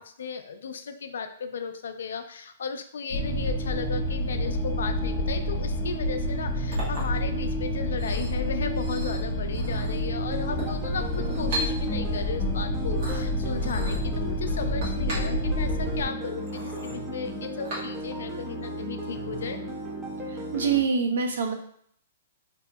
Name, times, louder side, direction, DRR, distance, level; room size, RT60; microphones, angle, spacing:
voice 1, 0.0-19.6, left 6 dB, 80° left, 8 dB, 0.3 m, -35 dB
sound 1, 3.1-16.0, equal, 40° left, 0.6 m, -28 dB
Chink clink, 6.3-18.3, right 1 dB, 45° right, 1.1 m, -40 dB
sound 2, 10.3-20.8, equal, 10° right, 0.4 m, -36 dB
voice 2, 20.3-21.5, right 5 dB, 80° right, 5 dB, 0.5 m, -25 dB
2.7 x 2.6 x 2.2 m, 0.63 s
hypercardioid pair, 160°, 0 cm